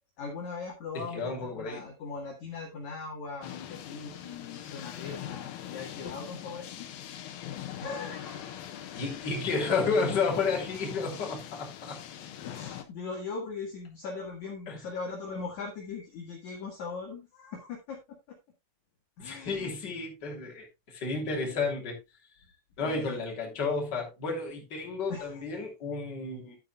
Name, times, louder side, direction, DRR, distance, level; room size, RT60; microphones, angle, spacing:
voice 1, 0.2-6.9 7.8-8.5 12.5-18.4 19.2-19.7 22.8-23.2 25.1-25.3, left 4 dB, 50° left, 2.4 m, -40 dB
voice 2, 0.9-1.8 9.0-12.0 14.7-14.8 19.2-22.0 22.8-26.6, left 4 dB, 25° left, 2.9 m, -32 dB
sound 1, 3.4-12.8, left 10 dB, 70° left, 2.3 m, -41 dB
11.5 x 9.3 x 2.4 m
omnidirectional pair, 5.5 m